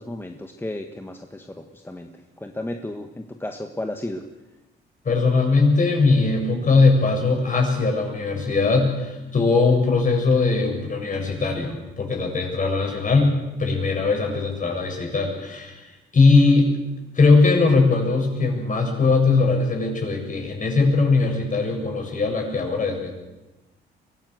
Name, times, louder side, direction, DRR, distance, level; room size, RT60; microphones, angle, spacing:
voice 1, 0.0-4.2, left 1 dB, 10° left, 5 dB, 1.5 m, -33 dB
voice 2, 5.1-16.7 17.1-23.1, left 3 dB, 40° left, 2 dB, 7.2 m, -20 dB
23.5 x 16.5 x 8.1 m, 1.1 s
cardioid pair, 90°, 20 cm